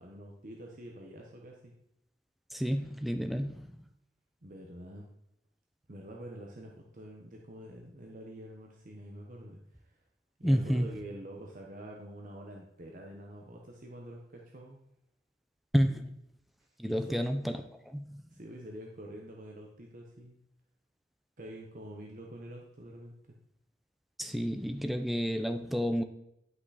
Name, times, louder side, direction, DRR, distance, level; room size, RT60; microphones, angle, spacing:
voice 1, 0.0-1.7 4.4-5.1 5.9-9.9 10.4-14.8 16.8-17.2 18.3-20.4 21.4-23.1, right 1 dB, 50° right, 0 dB, 1.0 m, -46 dB
voice 2, 2.5-3.8 10.4-10.9 15.7-16.1 16.8-17.5 17.9-18.2 24.2-26.0, equal, ahead, 6 dB, 0.5 m, -30 dB
11.0 x 5.8 x 4.1 m, 0.80 s
head